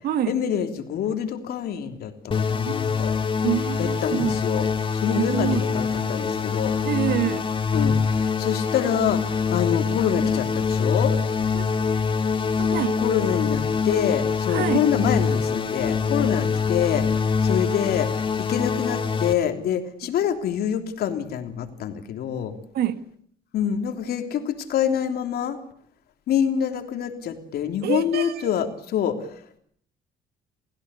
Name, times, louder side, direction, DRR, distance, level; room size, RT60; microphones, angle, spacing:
voice 1, 0.3-3.2 3.8-4.7 4.9-6.7 7.7-11.2 13.0-22.5 23.5-25.6 26.3-29.6, left 9 dB, 65° left, 3.4 m, -26 dB
sound 1, 2.3-19.3, left 5 dB, 30° left, 2.0 m, -24 dB
voice 2, 3.4-4.4 5.2-5.6 6.8-7.5 11.5-11.7 12.6-13.0 14.5-14.8 22.7-23.0 27.8-28.5, right 11 dB, 70° right, 1.9 m, -26 dB
29.5 x 16.0 x 8.4 m
cardioid pair, 110°, 17 cm